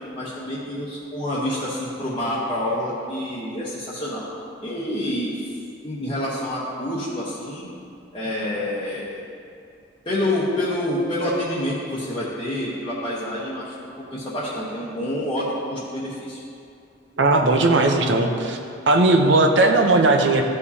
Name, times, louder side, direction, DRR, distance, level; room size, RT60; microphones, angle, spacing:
voice 1, 0.2-4.3 4.6-5.5 5.8-7.7 8.1-9.2 10.0-16.4, left 1 dB, 25° left, -9 dB, 1.0 m, -27 dB
voice 2, 17.2-18.6 18.9-20.4, right 2 dB, 70° right, 4 dB, 0.7 m, -17 dB
13.5 x 4.9 x 2.8 m, 2.5 s
head